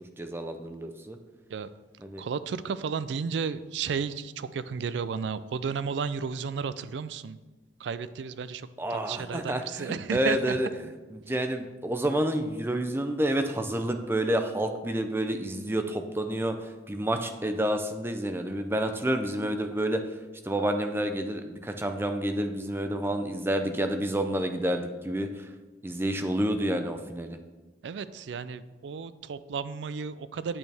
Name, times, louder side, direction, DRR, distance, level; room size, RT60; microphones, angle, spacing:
voice 1, 0.2-1.2 2.0-2.2 8.8-10.7 11.1-16.5 16.9-20.0 20.5-25.3 25.8-27.4, right 1 dB, 10° right, 6 dB, 0.5 m, -29 dB
voice 2, 2.2-7.4 7.8-10.6 27.8-30.6, right 6 dB, 70° right, 15 dB, 0.4 m, -33 dB
8.8 x 6.3 x 3.4 m, 1.2 s
head